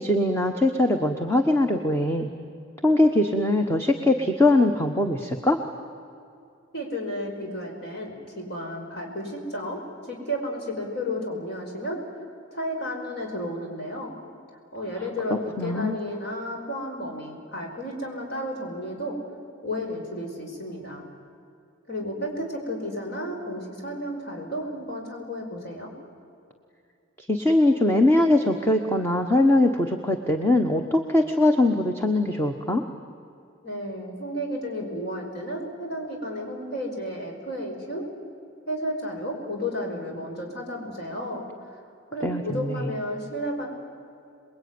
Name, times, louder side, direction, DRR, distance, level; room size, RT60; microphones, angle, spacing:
voice 1, 0.0-2.3 2.8-5.6 15.6-16.0 27.2-32.8 42.2-42.8, left 1 dB, 10° left, 4 dB, 1.2 m, -21 dB
voice 2, 6.7-12.0 12.5-14.1 14.7-19.1 19.6-21.1 21.9-25.9 33.6-38.0 38.7-41.4 41.7-41.8 42.1-43.7, equal, 55° left, 1 dB, 5.1 m, -32 dB
28.0 x 21.5 x 9.6 m, 2.5 s
head